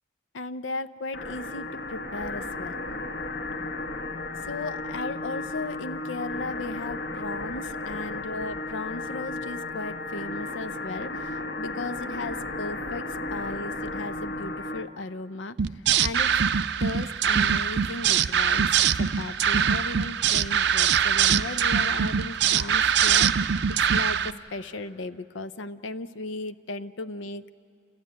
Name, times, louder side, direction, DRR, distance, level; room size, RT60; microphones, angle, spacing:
voice 1, 0.3-2.8 4.4-16.4 16.8-27.5, left 2 dB, 85° left, 12 dB, 0.7 m, -36 dB
sound 1, 1.1-14.9, left 2 dB, 60° left, 1.2 m, -34 dB
sound 2, 15.6-24.3, right 8 dB, 65° right, 0.5 m, -23 dB
28.0 x 15.0 x 9.4 m, 2.2 s
head